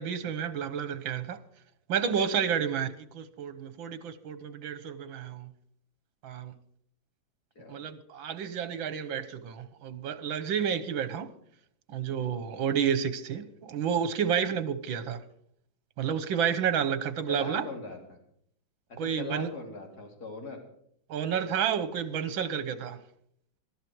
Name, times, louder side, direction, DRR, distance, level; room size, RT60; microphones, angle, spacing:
voice 1, 0.0-1.4 1.9-5.5 6.2-6.5 7.7-11.3 11.9-15.2 16.0-17.7 19.0-19.5 21.1-23.0, right 7 dB, 80° right, 1.9 m, -30 dB
voice 2, 17.3-18.2 18.9-20.6, left 3 dB, 50° left, 4.0 m, -40 dB
21.5 x 12.5 x 4.7 m
omnidirectional pair, 2.1 m